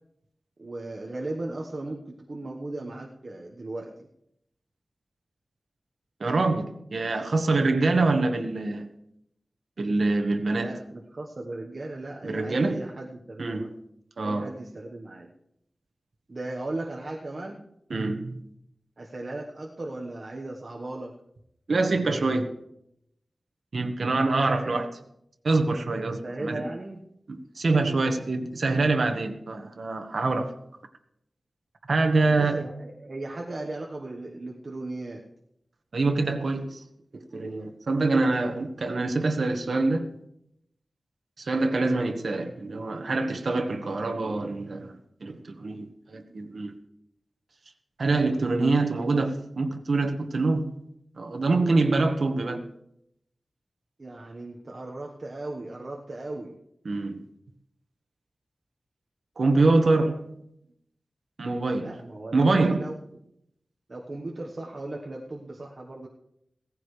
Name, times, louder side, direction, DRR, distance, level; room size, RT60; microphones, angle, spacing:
voice 1, 0.6-3.9 10.5-13.7 14.2-15.3 16.3-17.6 19.0-21.1 24.5-24.8 26.2-27.0 32.2-35.2 54.0-56.5 61.7-63.0 63.9-66.1, right 2 dB, 45° right, -1 dB, 1.2 m, -37 dB
voice 2, 6.2-8.9 9.8-10.7 12.2-12.9 13.4-13.7 14.2-14.5 17.9-18.4 21.7-22.5 23.7-24.9 25.4-26.6 27.3-30.5 31.9-32.7 35.9-36.8 37.1-40.1 41.4-44.9 45.2-46.7 48.0-50.7 51.2-52.6 56.8-57.2 59.4-60.3 61.4-61.9 62.3-62.9, right 3 dB, 70° right, 6 dB, 1.4 m, -25 dB
17.0 x 14.5 x 3.3 m, 0.77 s
wide cardioid pair, 105°, 0 cm